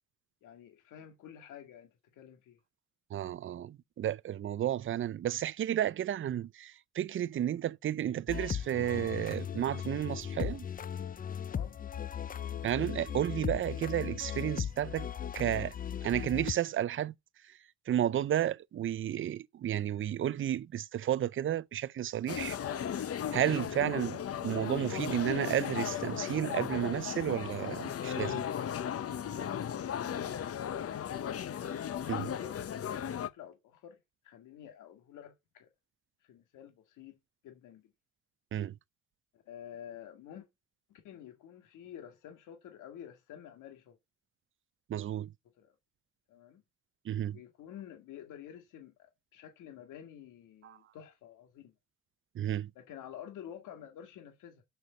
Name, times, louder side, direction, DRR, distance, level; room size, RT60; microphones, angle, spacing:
voice 1, 0.4-2.6 11.5-11.8 29.8-30.7 31.8-34.0 34.2-35.7 36.2-37.2 37.4-37.9 39.3-40.5 40.9-44.0 45.6-45.8 46.3-46.6 47.3-51.7 52.8-54.6, left 10 dB, 85° left, 2.0 m, -50 dB
voice 2, 3.1-10.7 12.6-15.1 15.3-15.7 16.0-17.1 17.9-22.6 23.3-28.4 32.1-32.3 38.5-38.7 44.9-45.3 47.1-47.4 50.6-50.8 52.4-52.7, right 11 dB, 45° right, 0.5 m, -32 dB
sound 1, 8.3-16.5, left 8 dB, 30° left, 0.5 m, -37 dB
sound 2, 22.3-33.3, left 9 dB, 50° left, 0.9 m, -36 dB
6.7 x 6.4 x 7.1 m
cardioid pair, 90°, 30 cm